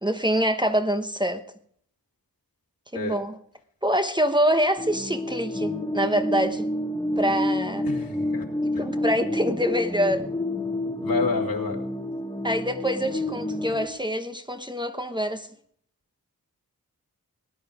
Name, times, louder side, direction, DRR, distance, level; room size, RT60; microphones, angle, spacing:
voice 1, 0.0-1.4 2.9-3.4 3.8-6.7 7.2-7.9 8.6-10.3 12.4-15.5, equal, 10° right, 1.0 m, -25 dB
sound 1, 4.8-13.9, left 1 dB, 10° left, 1.3 m, -29 dB
voice 2, 7.8-8.4 11.0-11.8, left 3 dB, 75° left, 2.8 m, -28 dB
19.0 x 11.0 x 4.9 m
wide cardioid pair, 75°, 36 cm